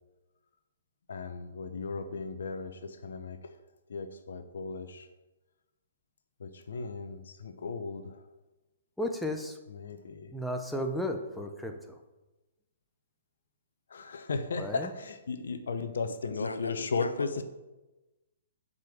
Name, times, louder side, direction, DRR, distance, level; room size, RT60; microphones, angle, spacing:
voice 1, 1.1-3.5 3.9-5.1 6.4-8.2 9.7-10.3 13.9-17.4, left 4 dB, 65° left, 9 dB, 1.0 m, -36 dB
voice 2, 9.0-9.6 10.3-11.7 14.6-14.9, left 1 dB, ahead, 3 dB, 1.0 m, -33 dB
voice 3, 16.3-17.3, left 2 dB, 85° left, 13 dB, 0.4 m, -37 dB
7.6 x 5.5 x 7.1 m, 1.1 s
figure-of-eight pair, 120°, 0 cm